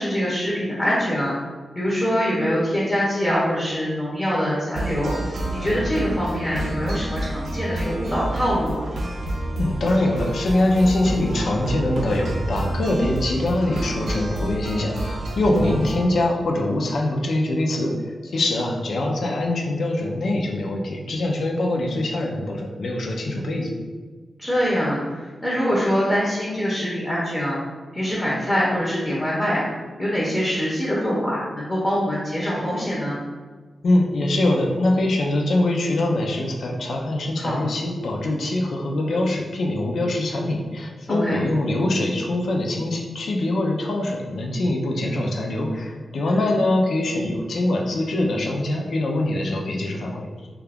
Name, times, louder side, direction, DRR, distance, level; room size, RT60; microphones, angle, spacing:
voice 1, 0.0-1.3 1.7-5.1 5.5-8.8 15.5-16.0 24.4-27.6 27.9-29.6 30.0-33.2 37.4-37.6 41.1-41.4 46.3-46.5, equal, 15° left, -6 dB, 0.6 m, -24 dB
sound 1, 4.7-16.1, right 1 dB, 60° right, 0.5 m, -29 dB
voice 2, 9.5-23.8 33.8-50.3, left 1 dB, 70° left, 0 dB, 0.4 m, -23 dB
2.8 x 2.3 x 3.4 m, 1.4 s
wide cardioid pair, 160°, 0 cm